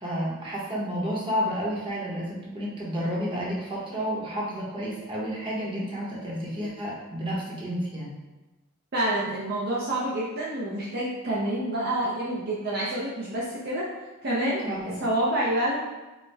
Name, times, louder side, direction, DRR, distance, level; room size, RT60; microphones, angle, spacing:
voice 1, 0.0-8.2 14.6-15.0, equal, 25° right, -6 dB, 1.0 m, -31 dB
voice 2, 8.9-13.9 14.2-14.7 15.0-15.8, right 1 dB, 50° right, -6 dB, 0.6 m, -27 dB
4.4 x 2.2 x 3.4 m, 1.1 s
head